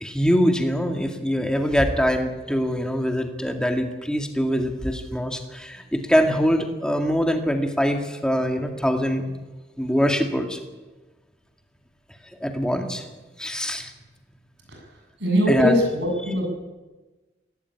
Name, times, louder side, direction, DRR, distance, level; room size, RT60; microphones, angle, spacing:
voice 1, 0.0-9.3 9.8-10.6 12.4-13.1 13.4-13.9 15.5-15.8, equal, 5° left, 3 dB, 2.0 m, -23 dB
voice 2, 15.2-16.5, equal, 75° right, 2 dB, 7.6 m, -22 dB
18.5 x 17.0 x 9.7 m, 1.2 s
head